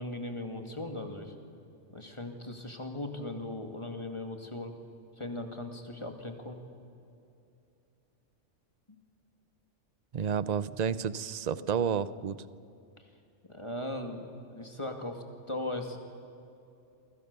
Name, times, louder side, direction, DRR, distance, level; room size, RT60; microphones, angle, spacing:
voice 1, 0.0-1.3 1.9-4.7 5.2-6.6 13.5-16.0, left 1 dB, 25° left, 4 dB, 2.4 m, -38 dB
voice 2, 10.1-12.4, right 7 dB, 40° right, 16 dB, 0.7 m, -30 dB
28.5 x 24.5 x 6.9 m, 2.7 s
omnidirectional pair, 1.3 m